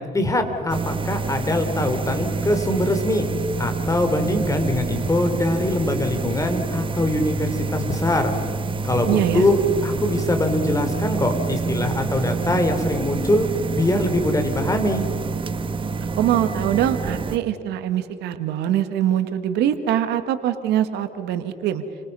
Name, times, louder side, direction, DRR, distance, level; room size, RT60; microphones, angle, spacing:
voice 1, 0.1-3.3 3.6-8.3 8.8-13.5 13.7-15.0, left 1 dB, 20° left, 6 dB, 3.5 m, -22 dB
sound 1, 0.7-17.4, right 4 dB, 30° right, 1.2 m, -27 dB
voice 2, 9.1-9.4 16.2-21.8, right 11 dB, 85° right, 9 dB, 1.7 m, -23 dB
30.0 x 25.5 x 5.5 m, 2.1 s
cardioid pair, 110°, 17 cm